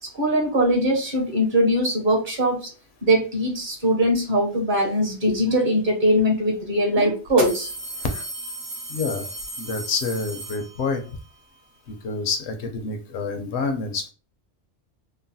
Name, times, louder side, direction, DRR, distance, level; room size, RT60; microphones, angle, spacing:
voice 1, 0.1-2.7 3.0-7.7, equal, 45° right, 1 dB, 0.9 m, -21 dB
sound 1, 6.2-6.3 7.3-11.1, right 1 dB, 85° right, 1.3 m, -34 dB
voice 2, 8.9-9.3 9.6-11.0 12.0-14.1, left 4 dB, 70° left, 5 dB, 0.8 m, -27 dB
3.1 x 2.0 x 2.5 m, 0.35 s
omnidirectional pair, 1.2 m